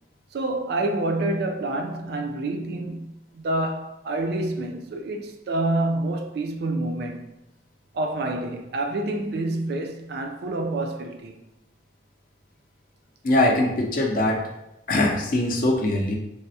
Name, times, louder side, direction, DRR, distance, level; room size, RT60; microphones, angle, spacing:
voice 1, 0.3-7.3 7.9-11.4, right 2 dB, 55° right, 0.3 m, -28 dB
voice 2, 13.2-14.4 14.9-16.2, left 1 dB, 45° left, 0.5 m, -22 dB
3.3 x 2.0 x 2.7 m
head